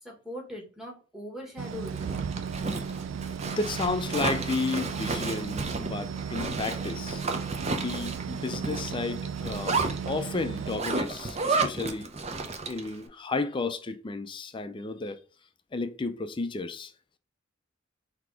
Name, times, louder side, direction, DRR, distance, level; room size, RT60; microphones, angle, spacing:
voice 1, 0.0-2.0, left 1 dB, ahead, 1.3 m, -40 dB
sound 1, 1.6-10.8, right 7 dB, 80° right, 0.3 m, -35 dB
Zipper (clothing), 1.7-12.9, right 3 dB, 35° right, 0.6 m, -32 dB
voice 2, 3.6-7.2 7.7-12.1 12.6-15.2 15.7-16.9, left 3 dB, 25° left, 0.4 m, -32 dB
4.0 x 2.9 x 4.6 m
head